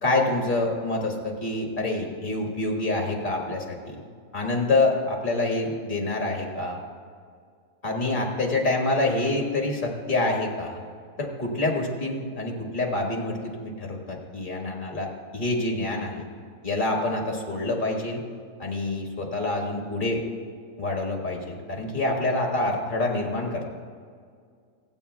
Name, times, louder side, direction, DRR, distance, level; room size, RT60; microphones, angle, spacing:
voice 1, 0.0-4.0 4.3-6.8 7.8-10.8 11.2-16.3 16.6-18.2 18.6-20.2 20.8-23.7, left 2 dB, 30° left, 0 dB, 1.7 m, -27 dB
24.0 x 8.6 x 2.3 m, 2.1 s
omnidirectional pair, 1.7 m